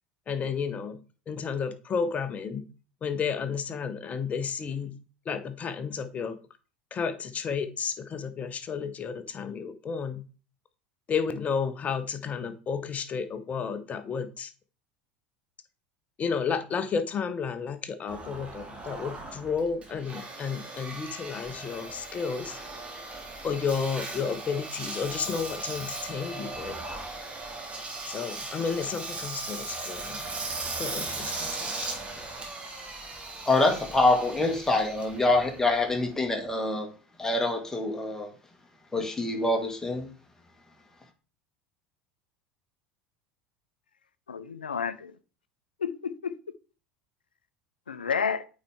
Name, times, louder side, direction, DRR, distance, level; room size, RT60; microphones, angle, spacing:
voice 1, 0.3-1.0 1.3-2.7 3.0-5.0 5.2-6.4 6.9-10.2 11.1-14.5 16.2-22.6 23.4-26.8 28.0-30.2 30.8-31.9, left 6 dB, 30° left, 0.9 m, -32 dB
Engine, 18.1-36.5, right 3 dB, 25° right, 2.1 m, -38 dB
voice 2, 33.5-36.9 37.2-38.3 38.9-40.1, left 2 dB, 10° left, 1.9 m, -25 dB
voice 3, 44.3-45.1 45.8-46.3 47.9-48.4, left 6 dB, 80° left, 0.5 m, -30 dB
8.8 x 4.4 x 3.6 m
figure-of-eight pair, 75°, 5 cm